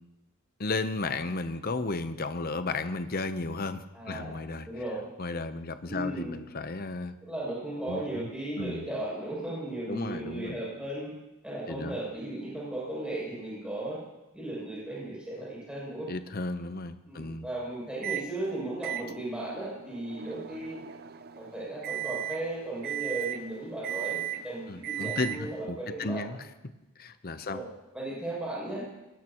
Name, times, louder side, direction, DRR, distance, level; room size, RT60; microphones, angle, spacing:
voice 1, 0.6-4.7 5.2-7.1 7.9-8.3 8.6-8.9 9.9-10.6 11.7-11.9 16.1-17.4 24.7-26.4 27.0-27.6, left 3 dB, 45° left, 10 dB, 0.8 m, -34 dB
voice 2, 3.9-4.4 4.7-5.0 5.9-6.4 7.2-11.1 11.4-14.0 14.3-16.1 17.1-20.8 21.3-26.4 27.3-27.7 27.9-28.9, right 1 dB, 5° right, -7 dB, 7.4 m, -36 dB
Microwave oven, 18.0-18.3 18.8-25.7, right 11 dB, 45° right, 0.6 m, -37 dB
21.5 x 19.0 x 3.0 m, 0.97 s
head